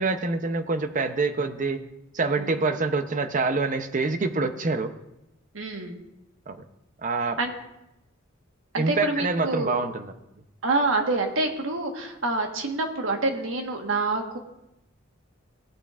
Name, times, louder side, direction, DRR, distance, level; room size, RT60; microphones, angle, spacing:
voice 1, 0.0-1.8 2.1-4.9 6.5-6.6 7.0-7.4 8.8-10.1, right 3 dB, 40° right, 9 dB, 0.7 m, -26 dB
voice 2, 5.5-6.0 7.2-7.5 8.7-9.8 10.6-14.4, right 2 dB, 85° right, 3 dB, 1.4 m, -27 dB
17.0 x 8.9 x 2.5 m, 0.89 s
head